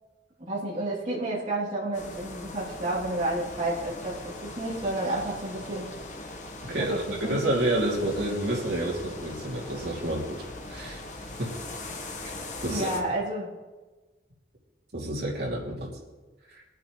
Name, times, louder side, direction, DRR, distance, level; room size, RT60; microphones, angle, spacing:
voice 1, 0.4-5.9 6.7-7.4 12.7-13.5, right 1 dB, 40° right, -9 dB, 3.1 m, -31 dB
sound 1, 1.9-13.0, left 2 dB, 45° left, 1.3 m, -40 dB
voice 2, 6.7-11.0 11.4-11.5 12.6-12.9 14.9-15.9 16.5-16.6, right 1 dB, 70° right, -4 dB, 2.8 m, -29 dB
20.0 x 9.0 x 3.2 m, 1.2 s
head